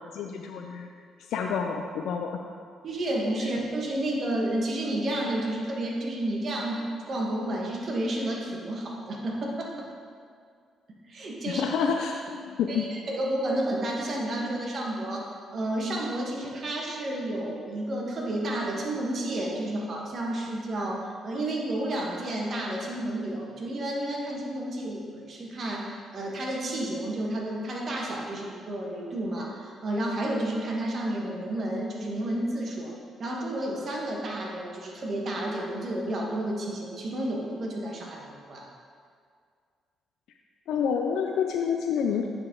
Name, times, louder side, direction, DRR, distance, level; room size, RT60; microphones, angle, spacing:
voice 1, 0.1-0.9 1.3-2.4 11.5-12.8 40.7-42.3, left 6 dB, 80° left, 2 dB, 0.4 m, -28 dB
voice 2, 2.8-9.9 11.1-11.6 12.7-32.9 33.2-38.7, right 1 dB, 50° right, -2 dB, 1.3 m, -31 dB
8.8 x 4.1 x 3.7 m, 2.1 s
cardioid pair, 90°, 0 cm